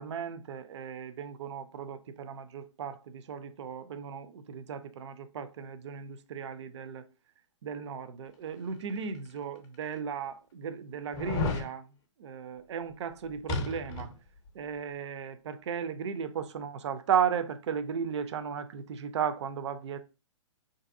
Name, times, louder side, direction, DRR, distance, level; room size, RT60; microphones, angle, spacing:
voice 1, 0.0-7.0 7.6-11.9 12.2-14.1 14.5-20.0, right 7 dB, 60° right, 0.5 m, -35 dB
sound 1, 9.1-9.2 9.9-10.0 11.1-11.7 13.5-14.2 14.5-14.6, left 3 dB, 30° left, 0.6 m, -32 dB
3.8 x 2.6 x 2.5 m
hypercardioid pair, 140°, 16 cm